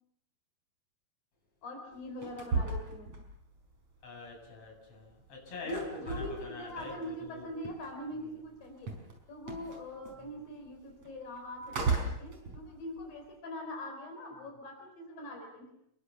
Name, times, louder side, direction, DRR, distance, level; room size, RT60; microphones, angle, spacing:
voice 1, 1.6-3.1 5.6-8.9 9.3-15.7, left 1 dB, 75° left, 3 dB, 5.9 m, -42 dB
sound 1, 1.9-4.0 4.3-8.2 8.5-13.2, right 3 dB, 45° right, 5.9 m, -37 dB
voice 2, 4.0-7.5 10.2-10.3, left 3 dB, 40° left, 1 dB, 8.8 m, -45 dB
29.5 x 22.0 x 7.0 m, 0.73 s
omnidirectional pair, 4.1 m